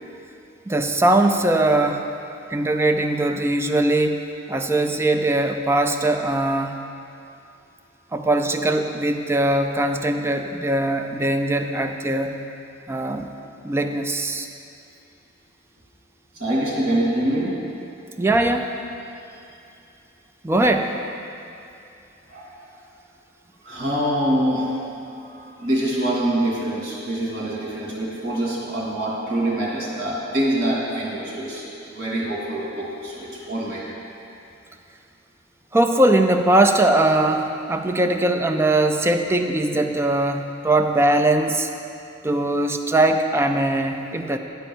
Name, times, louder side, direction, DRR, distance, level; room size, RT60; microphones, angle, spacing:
voice 1, 0.7-2.1 2.5-4.2 4.5-6.8 8.1-12.4 12.9-13.3 13.6-14.5 18.2-18.7 20.4-21.0 35.7-41.7 42.2-44.4, right 1 dB, 15° right, 5 dB, 0.4 m, -20 dB
voice 2, 16.3-17.6 22.3-22.6 23.6-24.7 25.1-33.8, right 1 dB, 50° right, -5 dB, 2.4 m, -25 dB
10.0 x 4.5 x 7.0 m, 2.6 s
head